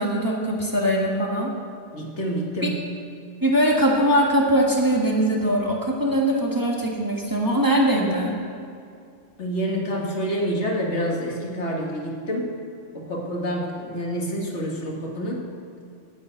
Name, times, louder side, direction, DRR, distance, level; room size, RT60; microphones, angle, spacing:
voice 1, 0.0-1.5 2.6-2.7 3.4-8.3, equal, 15° right, -2 dB, 1.4 m, -21 dB
voice 2, 1.9-2.8 9.4-12.5 12.9-15.4, equal, 65° left, -1 dB, 2.0 m, -27 dB
9.5 x 8.9 x 7.9 m, 2.4 s
omnidirectional pair, 1.3 m